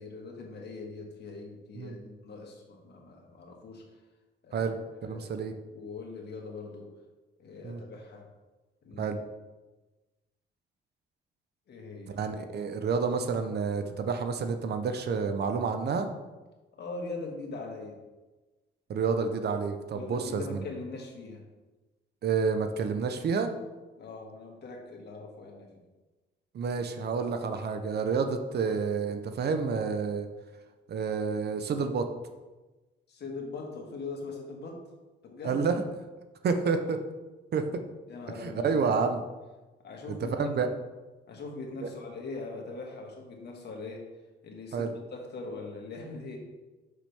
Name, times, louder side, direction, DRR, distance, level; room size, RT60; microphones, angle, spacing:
voice 1, 0.0-3.8 4.4-4.7 5.0-6.9 7.4-8.3 8.8-9.1 11.7-12.2 16.7-18.0 19.9-21.4 24.0-25.8 33.1-34.9 35.2-35.6 38.1-38.8 39.8-40.7 41.3-44.1 44.4-46.4, left 3 dB, 55° left, 0 dB, 1.6 m, -41 dB
voice 2, 5.1-5.5 7.6-7.8 9.0-9.2 12.1-16.1 18.9-20.6 22.2-23.5 26.5-30.3 30.9-32.1 35.4-35.8 36.4-37.0 37.5-37.8 38.4-39.2 40.3-40.7 41.8-41.9 44.7-44.9, right 5 dB, 55° right, 7 dB, 0.7 m, -29 dB
6.3 x 5.8 x 3.3 m, 1.2 s
cardioid pair, 90°, 20 cm